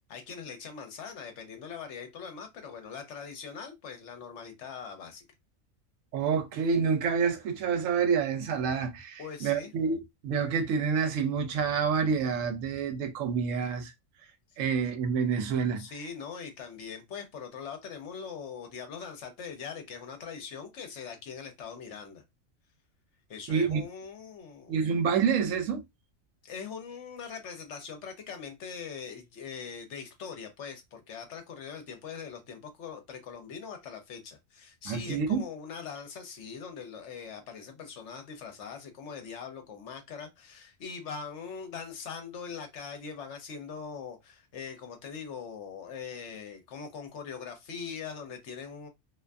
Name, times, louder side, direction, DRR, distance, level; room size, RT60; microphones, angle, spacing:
voice 1, 0.1-5.2 9.2-9.7 15.8-22.2 23.3-24.9 26.4-48.9, left 6 dB, 65° left, 0.9 m, -42 dB
voice 2, 6.1-13.9 14.6-15.8 23.5-23.8 24.7-25.8 34.9-35.4, right 6 dB, 80° right, 1.0 m, -28 dB
2.5 x 2.5 x 2.2 m
omnidirectional pair, 1.3 m